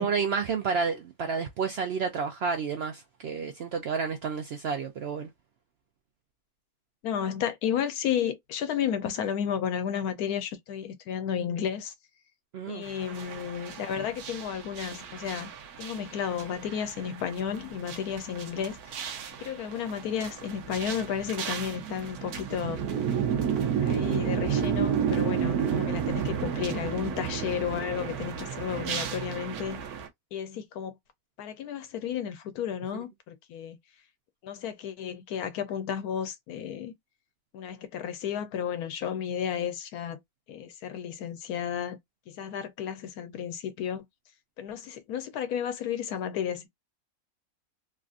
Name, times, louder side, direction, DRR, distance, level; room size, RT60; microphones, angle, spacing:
voice 1, 0.0-5.3 12.5-12.9 32.9-33.0, right 5 dB, 70° right, 0.6 m, -30 dB
voice 2, 7.0-11.9 12.7-15.5 15.8-19.0 19.4-22.8 23.8-29.8 30.3-31.0 31.4-33.8 34.4-36.9 37.5-40.2 40.5-42.0 42.3-44.1 44.6-46.7, left 8 dB, 90° left, 1.2 m, -32 dB
sound 1, 12.8-30.1, right 8 dB, 90° right, 1.2 m, -32 dB
3.3 x 2.4 x 2.4 m
omnidirectional pair, 1.5 m